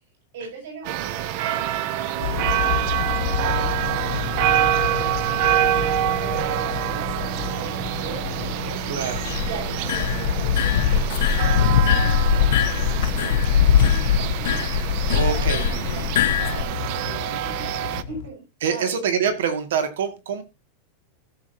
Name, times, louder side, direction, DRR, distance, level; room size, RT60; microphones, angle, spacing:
voice 1, 0.3-19.0, right 4 dB, 70° right, 0 dB, 7.0 m, -40 dB
sound 1, 0.8-18.0, right 12 dB, 40° right, 0.6 m, -26 dB
sound 2, 2.2-18.3, left 9 dB, 50° left, 1.0 m, -32 dB
sound 3, 9.0-16.6, left 8 dB, 75° left, 0.8 m, -21 dB
voice 2, 15.1-15.6 18.6-20.4, right 7 dB, 85° right, 8 dB, 2.0 m, -25 dB
17.0 x 7.4 x 2.8 m, 0.25 s
supercardioid pair, 180°, 0 cm